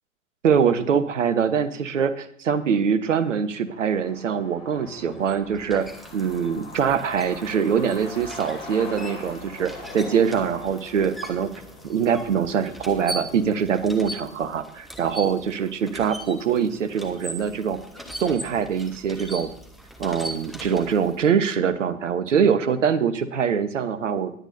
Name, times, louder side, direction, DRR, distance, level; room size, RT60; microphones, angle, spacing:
voice 1, 0.4-5.9 6.1-11.5 11.8-17.8 18.2-19.5 20.0-24.4, right 7 dB, 60° right, 13 dB, 1.1 m, -23 dB
Truck, 3.7-18.9 19.2-19.3 19.5-20.4 20.7-20.8 21.2-21.5, left 3 dB, 30° left, 2.9 m, -44 dB
sound 1, 5.0-21.3, right 1 dB, ahead, 0.8 m, -41 dB
20.0 x 8.2 x 2.7 m, 0.69 s
figure-of-eight pair, 115°, 43 cm